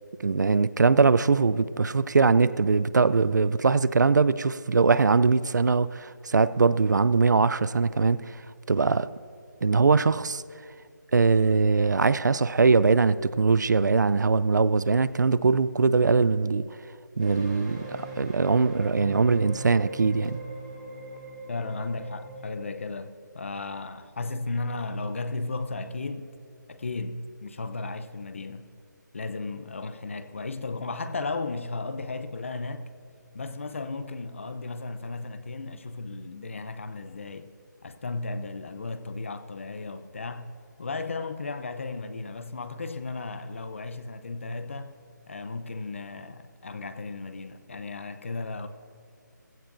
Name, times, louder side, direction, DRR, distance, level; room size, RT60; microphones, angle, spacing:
voice 1, 0.2-8.4 8.7-9.1 9.6-10.4 11.1-16.7 17.2-20.4, right 4 dB, 70° right, 0.4 m, -22 dB
sound 1, 17.2-22.5, right 2 dB, 25° right, 2.2 m, -40 dB
voice 2, 21.5-26.4 26.7-28.7 29.1-32.9 33.3-37.5 37.8-40.5 40.8-45.0 45.3-48.7, left 3 dB, 40° left, 0.7 m, -35 dB
18.5 x 16.0 x 2.6 m
figure-of-eight pair, 175°, 10 cm